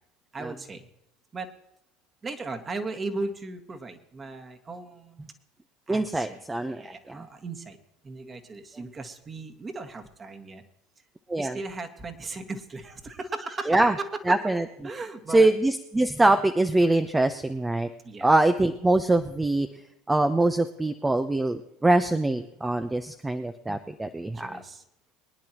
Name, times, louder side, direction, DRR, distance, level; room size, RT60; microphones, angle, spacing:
voice 1, 0.3-0.9 1.3-1.5 2.2-5.3 5.9-7.8 8.0-10.6 11.4-14.2 14.8-15.5 18.0-18.3 24.3-24.8, right 3 dB, 30° right, 6 dB, 1.9 m, -37 dB
voice 2, 5.9-7.2 11.3-11.6 13.7-13.9 14.3-14.6 15.3-17.9 18.2-19.7 20.1-24.6, right 2 dB, 15° right, 8 dB, 0.8 m, -23 dB
23.5 x 10.5 x 3.0 m, 0.79 s
hypercardioid pair, 75°, 0 cm